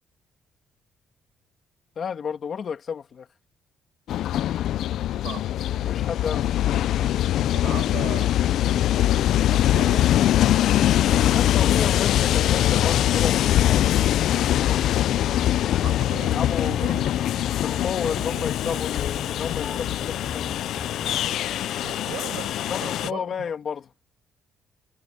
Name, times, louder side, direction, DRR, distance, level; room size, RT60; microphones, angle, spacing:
voice 1, 2.0-3.3 5.8-6.7 11.3-13.8 14.5-14.8 15.4-15.8 16.3-16.8 17.6-20.7 22.7-23.9, left 7 dB, 40° left, 1.8 m, -32 dB
Train, 4.1-23.1, left 12 dB, 65° left, 0.3 m, -22 dB
sound 1, 5.7-21.3, left 2 dB, 15° left, 4.6 m, -42 dB
voice 2, 7.5-8.3 8.7-9.0 9.4-10.1 10.4-11.4 15.8-17.2 18.0-18.8 21.8-23.3, right 14 dB, 85° right, 7.5 m, -39 dB
cardioid pair, 160°, 0 cm